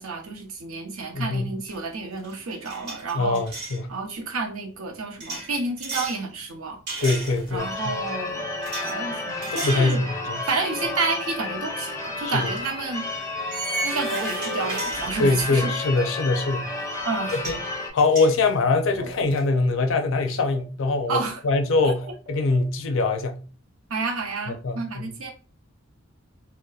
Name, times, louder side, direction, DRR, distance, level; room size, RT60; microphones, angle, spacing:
voice 1, 0.0-3.4 3.9-6.8 7.5-8.5 8.8-10.1 10.4-13.1 13.8-15.7 17.0-17.4 21.1-21.4 21.8-21.9 23.9-25.3, right 4 dB, 85° right, 0.7 m, -30 dB
Metal doors, 1.7-1.9 2.2-3.8 5.2-6.2 6.9-7.7 8.6-8.9 9.4-9.9 10.3-10.5 12.0-12.1 13.5-15.6 16.9-17.0 17.3-17.6 18.0-19.4, right 2 dB, 60° right, 1.0 m, -34 dB
voice 2, 3.1-3.9 7.0-8.0 9.5-10.4 12.2-12.5 15.2-16.7 17.3-17.6 17.9-23.4 24.5-25.1, left 3 dB, 65° left, 0.4 m, -23 dB
sound 1, 7.0-7.1 8.1-8.2 9.2-9.3 10.3-10.4 11.4-11.5 12.5-12.6 13.6-13.7 14.7-14.8 15.8-15.9 16.9-17.0 17.5-17.6 18.0-18.1 18.5-18.6 19.0-19.1 19.5-19.6 20.0-20.1 20.5-20.6 21.0-21.1 21.5-22.6, right 6 dB, 30° right, 0.9 m, -45 dB
Church bell / Car / Alarm, 7.6-17.9, left 2 dB, 15° left, 0.5 m, -31 dB
2.7 x 2.1 x 2.3 m
head